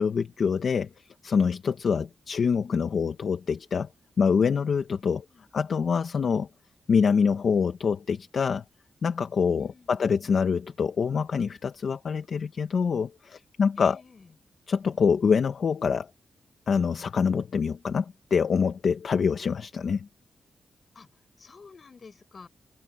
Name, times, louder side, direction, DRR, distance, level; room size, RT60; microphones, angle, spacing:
voice 1, 0.0-3.9 4.2-5.2 5.5-6.5 6.9-8.6 9.0-14.0 14.7-16.1 16.7-20.1, left 6 dB, 55° left, 1.2 m, -25 dB
voice 2, 5.0-5.5 9.6-10.1 13.8-14.3 20.9-21.1 21.4-22.5, left 4 dB, 35° left, 7.5 m, -51 dB
wide cardioid pair, 160°, 0 cm